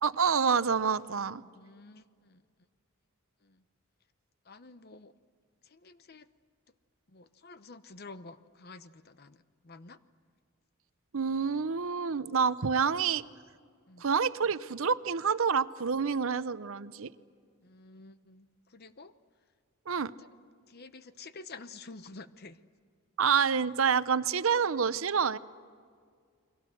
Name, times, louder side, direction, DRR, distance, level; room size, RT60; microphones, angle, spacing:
voice 1, 0.0-1.4 11.1-13.2 14.0-17.1 19.9-20.1 23.2-25.4, right 6 dB, 65° right, 15 dB, 0.7 m, -28 dB
voice 2, 1.4-2.4 3.4-3.6 4.4-5.1 5.6-6.3 7.1-10.0 12.8-12.9 13.9-14.0 17.6-19.1 20.2-20.3 20.7-22.6, left 3 dB, 45° left, 13 dB, 0.9 m, -50 dB
30.0 x 23.0 x 7.7 m, 2.1 s
head